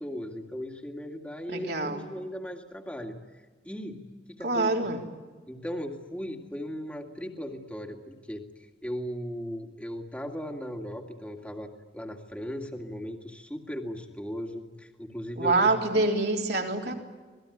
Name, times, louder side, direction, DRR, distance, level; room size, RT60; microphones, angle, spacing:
voice 1, 0.0-3.1 3.6-4.0 4.3-4.9 5.5-16.0 16.9-17.0, equal, 5° left, 2 dB, 2.2 m, -37 dB
voice 2, 1.5-2.0 4.4-5.0 15.4-16.9, right 2 dB, 65° right, 1 dB, 3.6 m, -26 dB
26.5 x 19.5 x 9.8 m, 1.4 s
head